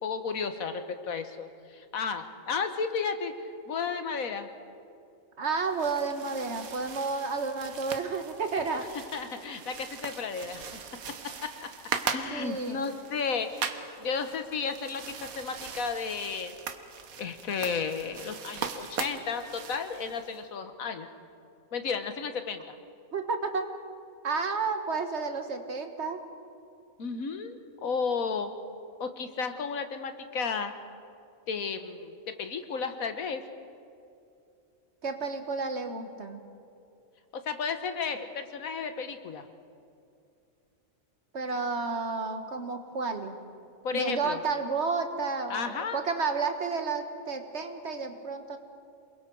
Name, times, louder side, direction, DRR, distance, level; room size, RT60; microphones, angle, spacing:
voice 1, 0.0-4.5 9.1-11.7 12.1-16.6 17.2-21.1 21.7-22.8 27.0-28.5 29.0-30.7 31.5-33.4 37.3-39.4 43.8-44.4 45.5-46.0, left 5 dB, 85° left, 8 dB, 1.6 m, -33 dB
voice 2, 5.4-8.9 12.3-12.8 23.1-23.7 24.2-26.2 35.0-36.4 41.3-43.3 43.9-48.6, right 4 dB, 55° right, 6 dB, 1.7 m, -31 dB
sound 1, 5.6-20.4, right 6 dB, 90° right, 1.5 m, -40 dB
28.0 x 21.0 x 4.7 m, 2.5 s
omnidirectional pair, 1.4 m